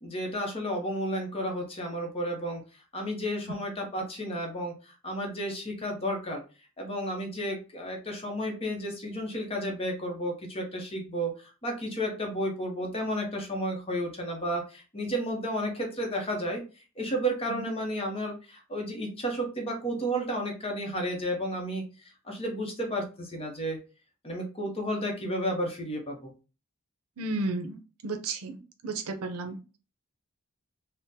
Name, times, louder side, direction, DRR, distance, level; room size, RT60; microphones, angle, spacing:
voice 1, 0.0-2.6 2.9-4.7 5.0-6.4 6.8-11.3 11.6-16.6 17.0-21.8 22.3-23.8 24.2-26.3, equal, 25° left, 1 dB, 0.7 m, -32 dB
voice 2, 27.2-27.8 28.0-28.6 28.8-29.8, right 2 dB, 85° right, 7 dB, 0.6 m, -33 dB
3.6 x 2.1 x 2.7 m, 0.33 s
head